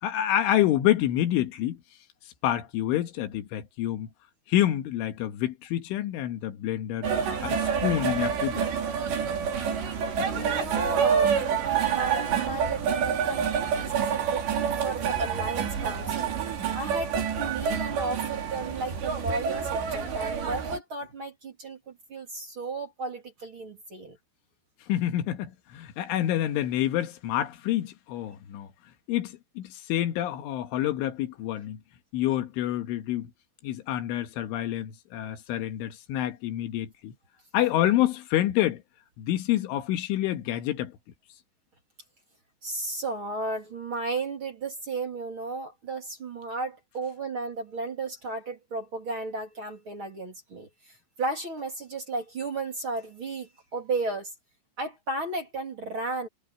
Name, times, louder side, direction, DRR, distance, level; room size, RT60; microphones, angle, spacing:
voice 1, 0.0-1.8 2.4-4.1 4.5-7.1 7.4-8.7 9.6-9.7 10.4-10.6 24.9-28.7 29.1-31.8 32.1-33.3 33.6-37.1 37.5-38.8 39.2-40.9, left 13 dB, 85° left, 4.1 m, -27 dB
sound 1, 7.0-20.8, right 7 dB, 65° right, 5.9 m, -28 dB
voice 2, 10.3-16.3 16.7-24.2 42.6-54.3 54.8-56.3, right 3 dB, 30° right, 3.0 m, -34 dB
omnidirectional pair, 5.4 m